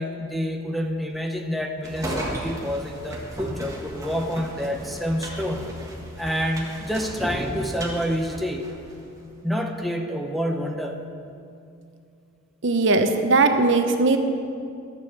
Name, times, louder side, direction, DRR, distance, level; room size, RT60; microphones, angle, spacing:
voice 1, 0.0-5.7 6.2-8.7 9.4-11.0, equal, ahead, 3 dB, 0.7 m, -28 dB
sound 1, 1.8-9.0, equal, 15° right, 1.6 m, -34 dB
voice 2, 12.6-14.2, right 3 dB, 65° right, 7 dB, 0.8 m, -19 dB
13.0 x 7.0 x 7.2 m, 2.5 s
head